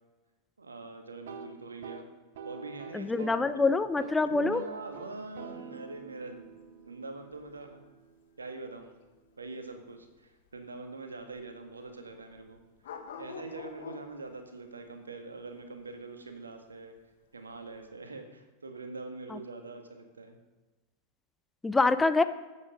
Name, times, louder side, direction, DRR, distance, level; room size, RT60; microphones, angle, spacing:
voice 1, 0.6-2.1 2.4-3.3 3.5-3.7 4.2-6.5 6.9-7.8 8.4-9.0 9.4-12.6 13.2-16.9 17.3-20.4, right 3 dB, 75° right, 5 dB, 1.6 m, -43 dB
sound 1, 1.1-3.5 3.8-4.2 4.5-8.4, right 5 dB, 55° right, 1.2 m, -47 dB
voice 2, 2.9-4.6 19.3-19.4 21.6-22.2, left 3 dB, 10° left, 12 dB, 0.5 m, -25 dB
sound 2, 3.3-17.9, left 5 dB, 60° left, 1.5 m, -50 dB
14.0 x 8.1 x 5.2 m, 1.1 s
figure-of-eight pair, 90°, 0 cm